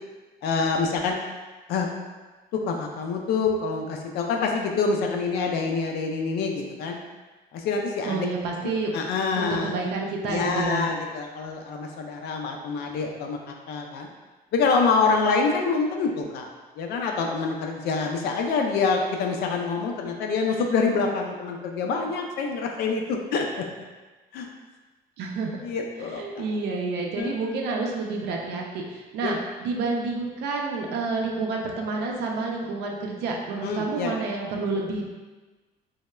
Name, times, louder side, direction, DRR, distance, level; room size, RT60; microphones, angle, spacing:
voice 1, 0.4-1.2 1.7-1.9 2.5-7.0 7.5-8.3 8.6-9.7 10.3-14.1 14.5-16.5 16.8-23.5 24.3-24.5 25.6-26.4 27.2-27.6 29.2-29.3 33.6-34.1, left 4 dB, 75° left, 2 dB, 0.4 m, -26 dB
voice 2, 8.1-8.9 9.4-10.9 25.2-25.6 26.0-35.1, right 3 dB, 80° right, 0 dB, 0.5 m, -29 dB
3.0 x 2.0 x 2.2 m, 1.3 s
cardioid pair, 110°, 17 cm